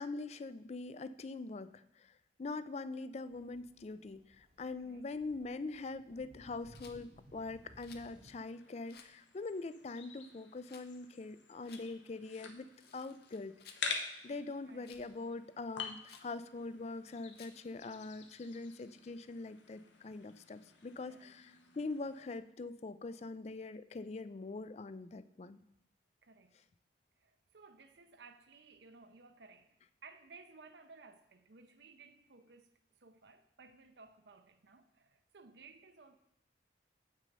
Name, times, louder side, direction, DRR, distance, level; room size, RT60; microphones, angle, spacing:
voice 1, 0.0-2.1 2.4-12.7 12.9-13.8 14.2-25.6, left 3 dB, 35° left, 0.4 m, -43 dB
sound 1, 3.3-8.4, equal, 35° right, 0.9 m, -61 dB
Rattle, 6.7-7.0 7.8-8.1 8.9-9.1 10.6-10.9 11.6-11.8 12.7-13.9 14.8-15.1 16.0-16.3 17.3-17.6, left 7 dB, 60° left, 0.8 m, -58 dB
sound 2, 7.2-22.4, left 5 dB, 85° left, 1.1 m, -48 dB
voice 2, 14.6-15.0 21.0-21.3 26.2-26.6 27.2-29.8 30.0-36.2, right 4 dB, 70° right, 0.7 m, -58 dB
7.8 x 6.1 x 5.4 m
head